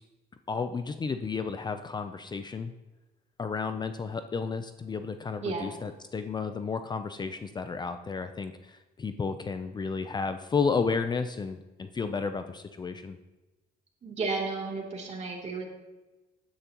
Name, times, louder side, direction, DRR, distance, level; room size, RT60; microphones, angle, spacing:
voice 1, 0.5-2.7 3.4-13.2, left 5 dB, 25° left, 9 dB, 0.6 m, -32 dB
voice 2, 14.0-15.7, right 4 dB, 40° right, -1 dB, 3.0 m, -33 dB
15.0 x 10.5 x 3.0 m, 1.1 s
cardioid pair, 110°, 17 cm